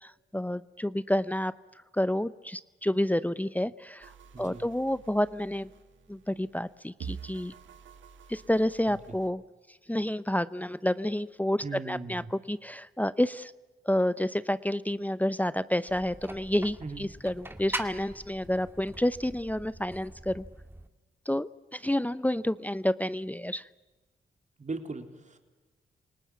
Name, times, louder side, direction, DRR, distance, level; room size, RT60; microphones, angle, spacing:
voice 1, 0.0-1.5 1.9-4.1 4.4-5.7 6.1-7.5 8.3-9.4 9.9-13.5 13.8-20.4 21.3-23.7, left 1 dB, 10° left, 16 dB, 0.7 m, -29 dB
sound 1, 4.0-9.3, right 6 dB, 80° right, 1.8 m, -47 dB
voice 2, 4.3-4.7 8.9-9.0 11.6-12.3 16.8-17.1 24.6-25.4, right 3 dB, 40° right, 6 dB, 3.5 m, -38 dB
sound 2, 15.9-20.9, right 1 dB, 10° right, 2.3 m, -42 dB
27.5 x 19.0 x 8.4 m, 1.2 s
supercardioid pair, 55°, 19 cm